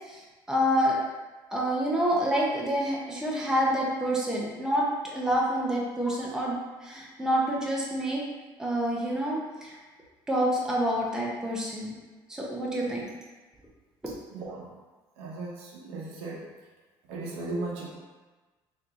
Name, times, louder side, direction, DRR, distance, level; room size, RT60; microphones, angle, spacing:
voice 1, 0.1-1.0 1.5-8.2 8.6-9.8 10.3-11.9 12.3-13.1, equal, 5° right, -4 dB, 0.6 m, -28 dB
voice 2, 14.3-14.7 15.2-16.4 17.1-17.9, right 2 dB, 90° right, -3 dB, 0.8 m, -36 dB
2.9 x 2.6 x 3.6 m, 1.3 s
cardioid pair, 125°, 10 cm